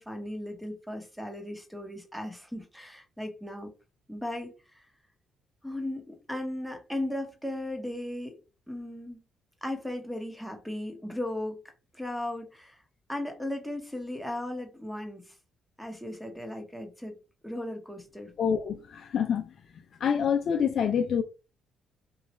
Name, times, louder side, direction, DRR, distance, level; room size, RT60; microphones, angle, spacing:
voice 1, 0.0-3.7 4.1-4.9 5.6-8.4 8.7-9.2 9.6-11.6 11.9-12.8 13.1-15.3 15.8-17.2 17.4-18.3, left 1 dB, ahead, 1.0 m, -36 dB
voice 2, 18.4-19.5 20.0-21.2, left 7 dB, 60° left, 0.3 m, -26 dB
3.0 x 2.4 x 2.9 m
cardioid pair, 90°, 0 cm